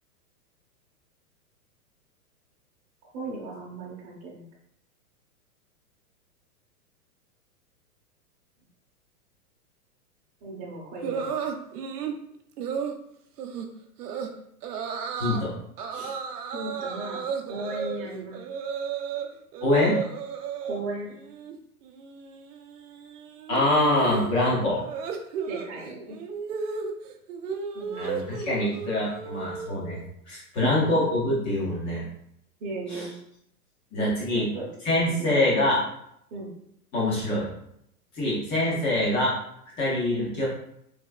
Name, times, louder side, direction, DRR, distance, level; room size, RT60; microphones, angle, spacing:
voice 1, 3.1-4.4 10.4-11.3 16.5-17.2 17.5-18.4 20.6-21.1 25.5-26.2 27.7-28.0 30.6-30.7 32.6-33.1 34.3-34.7 35.2-35.7 36.3-36.5, right 2 dB, 30° right, -6 dB, 0.8 m, -35 dB
sound 1, 11.0-12.2 12.6-13.0 13.4-13.7 14.0-14.3 14.6-15.4 15.8-19.3 19.5-20.8 21.1-21.6 21.8-30.0, right 6 dB, 80° right, 0.6 m, -34 dB
voice 2, 15.2-15.5 15.9-16.1 19.6-20.0 23.5-24.8 28.0-30.0 30.3-32.0 32.9-33.1 33.9-34.5 34.8-35.8 36.9-37.5 38.1-39.4 39.8-40.5, left 1 dB, 15° left, -5 dB, 0.3 m, -24 dB
3.4 x 3.2 x 2.2 m, 0.73 s
hypercardioid pair, 130°, 46 cm